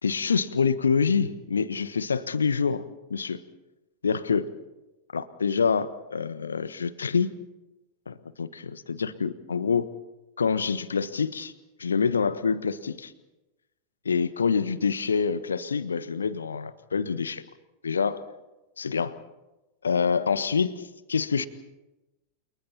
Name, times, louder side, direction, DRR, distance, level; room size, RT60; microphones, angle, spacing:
voice 1, 0.0-2.8 3.1-3.4 4.0-4.5 5.1-7.3 8.1-9.9 10.4-11.5 11.8-13.1 14.0-17.4 17.8-18.2 18.8-19.1 19.8-21.5, left 5 dB, 70° left, 14 dB, 1.3 m, -26 dB
29.5 x 28.5 x 4.3 m, 1.0 s
figure-of-eight pair, 90°, 0 cm